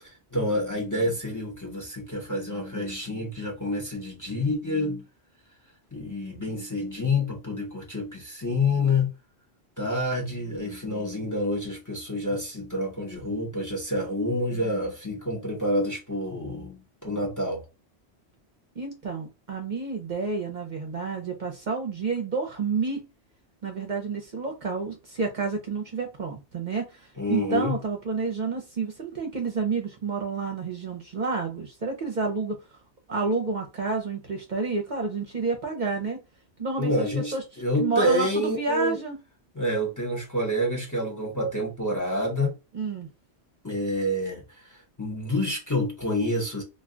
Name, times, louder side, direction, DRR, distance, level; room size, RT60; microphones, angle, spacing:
voice 1, 0.3-5.0 5.9-9.1 9.8-17.6 27.2-27.7 36.8-39.0 39.5-42.5 43.6-44.4 45.0-46.6, left 1 dB, 20° left, 0.8 m, -28 dB
voice 2, 18.8-23.0 23.6-32.8 33.1-36.2 36.6-39.2 42.7-43.1, right 4 dB, 50° right, 0.7 m, -30 dB
2.4 x 2.3 x 3.6 m
omnidirectional pair, 1.1 m